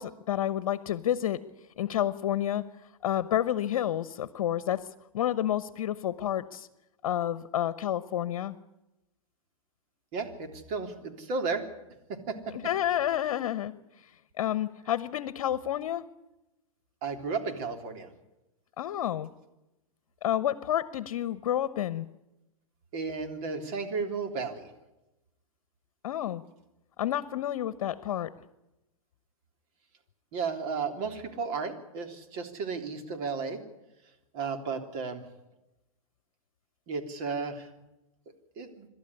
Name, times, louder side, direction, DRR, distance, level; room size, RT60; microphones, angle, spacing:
voice 1, 0.0-1.4 1.8-2.7 3.0-4.9 5.1-6.7 7.0-8.5 12.5-16.0 18.8-19.3 20.2-22.1 26.0-26.4 27.0-28.3, left 11 dB, 65° left, 16 dB, 1.0 m, -30 dB
voice 2, 10.1-11.6 12.1-12.4 17.0-18.1 22.9-24.7 30.3-33.6 34.3-35.2 36.9-37.7 38.6-38.9, right 4 dB, 45° right, 6 dB, 3.4 m, -33 dB
26.5 x 12.5 x 9.8 m, 0.96 s
hypercardioid pair, 120°, 18 cm